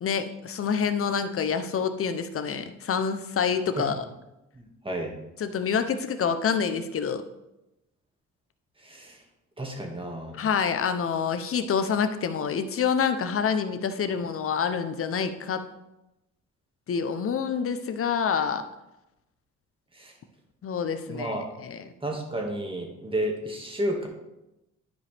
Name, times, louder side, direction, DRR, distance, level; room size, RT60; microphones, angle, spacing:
voice 1, 0.0-4.1 5.4-7.2 10.3-15.6 16.9-18.6 20.6-21.9, left 6 dB, 45° left, 9 dB, 0.8 m, -27 dB
voice 2, 4.6-5.1 8.8-9.2 9.6-10.4 20.0-20.1 21.1-21.5 22.0-24.1, right 1 dB, 15° right, 1 dB, 1.9 m, -31 dB
11.5 x 4.9 x 3.5 m, 0.92 s
cardioid pair, 90°, 30 cm